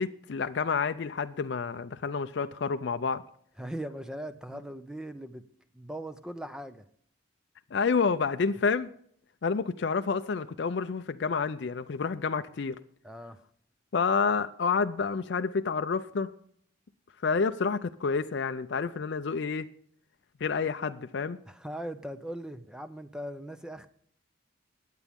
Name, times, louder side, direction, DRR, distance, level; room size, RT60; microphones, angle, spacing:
voice 1, 0.0-3.2 7.7-8.9 9.4-12.8 13.9-16.3 17.2-19.7 20.4-21.4, left 5 dB, 55° left, 0.4 m, -29 dB
voice 2, 3.6-5.5 5.7-6.8 13.0-13.4 21.5-23.9, right 1 dB, 5° right, 0.5 m, -39 dB
20.5 x 8.3 x 3.5 m
head